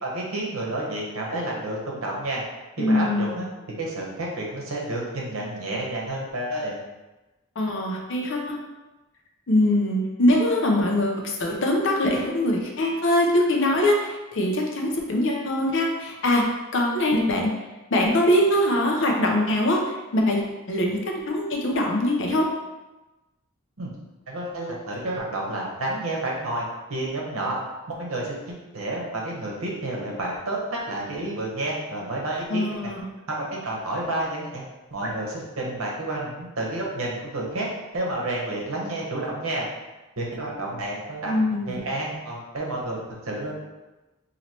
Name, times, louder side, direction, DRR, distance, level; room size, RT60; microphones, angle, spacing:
voice 1, 0.0-2.4 2.8-3.5 3.8-6.8 23.8-23.9 24.3-26.6 26.9-27.6 27.9-32.8 33.3-34.6 34.9-37.7 37.9-39.6 40.2-41.3 41.7-43.5, right 1 dB, 75° right, -2 dB, 0.9 m, -30 dB
voice 2, 2.8-3.4 7.6-8.6 9.5-16.4 16.7-17.5 17.9-21.0 21.3-22.5 32.5-33.0 41.2-41.8, left 1 dB, 60° left, 1 dB, 0.6 m, -22 dB
3.0 x 2.8 x 4.2 m, 1.1 s
head